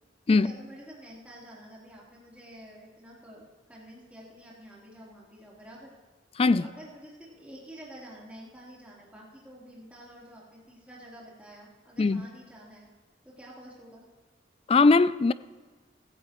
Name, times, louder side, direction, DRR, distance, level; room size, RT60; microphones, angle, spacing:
voice 1, 0.3-5.9 6.5-12.9 13.2-14.1, equal, 10° right, 3.5 m, -48 dB
voice 2, 14.7-15.3, left 3 dB, 30° left, 0.3 m, -20 dB
16.5 x 14.5 x 3.1 m
head